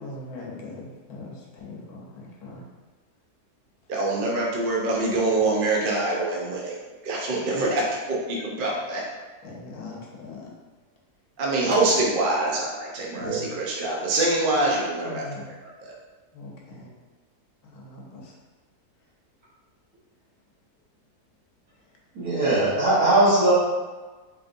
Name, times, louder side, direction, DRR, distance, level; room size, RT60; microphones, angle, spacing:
voice 1, 0.0-2.6 9.4-10.5 15.0-15.4 16.3-16.9 17.6-18.0, left 3 dB, 75° left, -2 dB, 1.3 m, -40 dB
voice 2, 3.9-9.0 11.4-15.2 15.6-15.9, right 2 dB, 50° right, -3 dB, 0.7 m, -25 dB
voice 3, 13.1-13.4 22.1-23.5, right 1 dB, 65° right, -11 dB, 1.7 m, -20 dB
4.5 x 3.1 x 2.5 m, 1.3 s
omnidirectional pair, 1.7 m